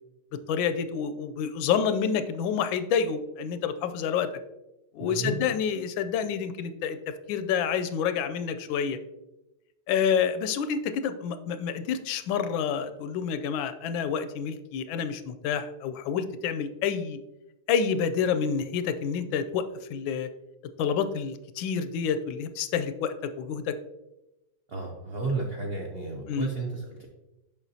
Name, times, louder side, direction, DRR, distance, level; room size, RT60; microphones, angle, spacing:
voice 1, 0.5-4.3 4.9-7.0 7.3-9.0 9.9-17.2 17.7-19.6 19.9-20.3 20.8-23.7 26.3-26.5, left 7 dB, 90° left, 10 dB, 1.3 m, -28 dB
voice 2, 5.0-5.3 24.7-27.1, right 3 dB, 70° right, 0 dB, 0.5 m, -32 dB
7.1 x 5.6 x 2.7 m, 0.96 s
omnidirectional pair, 2.1 m